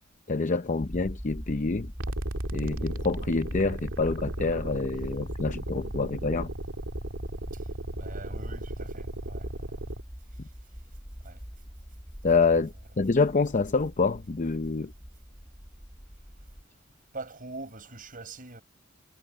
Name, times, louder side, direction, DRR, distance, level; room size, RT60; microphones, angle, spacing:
voice 1, 0.3-1.9 2.5-6.5 12.2-14.9, left 4 dB, 40° left, 0.6 m, -27 dB
sound 1, 0.8-16.6, equal, 5° right, 2.4 m, -42 dB
sound 2, 2.0-10.0, right 1 dB, 85° right, 2.1 m, -36 dB
voice 2, 8.0-9.8 11.2-11.4 17.1-18.6, right 3 dB, 45° right, 7.7 m, -43 dB
head